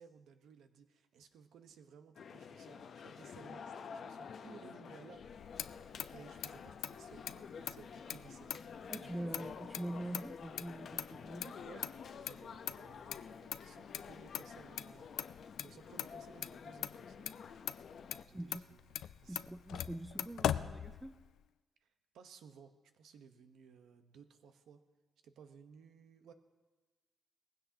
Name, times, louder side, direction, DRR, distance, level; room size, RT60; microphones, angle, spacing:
voice 1, 0.0-5.5 6.1-9.5 11.6-11.8 12.3-17.3 18.3-19.5 21.8-21.9 22.1-24.8 25.2-26.3, right 6 dB, 85° right, 1.0 m, -59 dB
sound 1, 2.2-18.2, left 6 dB, 65° left, 0.7 m, -50 dB
Motor vehicle (road), 5.2-21.4, left 10 dB, 85° left, 0.3 m, -43 dB
voice 2, 8.9-11.7 18.3-18.8 19.3-21.2, right 1 dB, 10° right, 0.4 m, -44 dB
19.0 x 16.0 x 2.8 m
cardioid pair, 100°, 0 cm